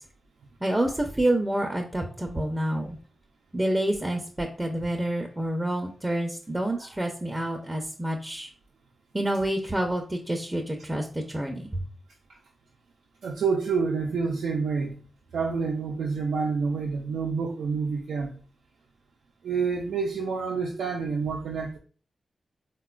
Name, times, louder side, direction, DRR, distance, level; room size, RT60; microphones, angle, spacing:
voice 1, 0.6-3.0 3.5-8.5 9.1-11.8, right 1 dB, 20° right, 0.5 m, -28 dB
voice 2, 13.2-15.0 15.3-18.4 19.4-21.8, right 5 dB, 85° right, 0.4 m, -28 dB
3.7 x 2.2 x 2.3 m
cardioid pair, 45°, 0 cm